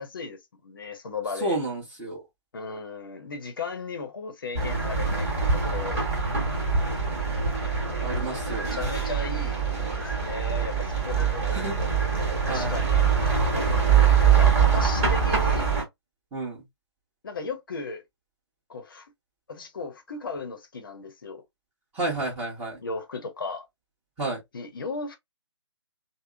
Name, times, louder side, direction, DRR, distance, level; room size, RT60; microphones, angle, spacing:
voice 1, 0.0-1.6 2.5-6.0 8.2-8.4 8.7-11.7 12.5-13.1 13.5-13.9 14.3-15.7 17.2-18.0 18.7-19.1 19.5-21.4 22.8-23.7 24.5-25.2, left 4 dB, 50° left, 0.7 m, -36 dB
voice 2, 1.4-2.2 8.0-8.9 11.4-11.7 12.5-12.9 16.3-16.6 21.9-22.8 24.2-24.4, right 2 dB, 10° right, 1.1 m, -31 dB
sound 1, 4.5-15.8, right 6 dB, 30° right, 1.5 m, -24 dB
3.3 x 2.1 x 2.3 m
figure-of-eight pair, 140°, 15 cm